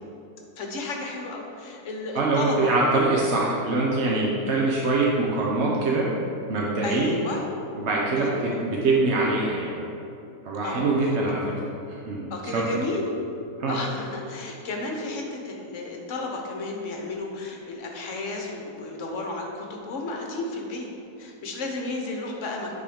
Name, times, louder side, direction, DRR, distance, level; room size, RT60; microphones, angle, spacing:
voice 1, 0.6-2.7 6.8-7.4 8.2-8.6 10.6-10.8 12.3-13.0 13.7-20.9 21.2-22.8, left 2 dB, 55° left, 1 dB, 1.2 m, -33 dB
voice 2, 2.1-6.1 6.5-7.1 7.8-9.7 10.4-11.6 11.9-12.8 13.6-13.8, right 2 dB, 50° right, -4 dB, 1.0 m, -24 dB
8.6 x 3.9 x 5.1 m, 2.8 s
omnidirectional pair, 1.8 m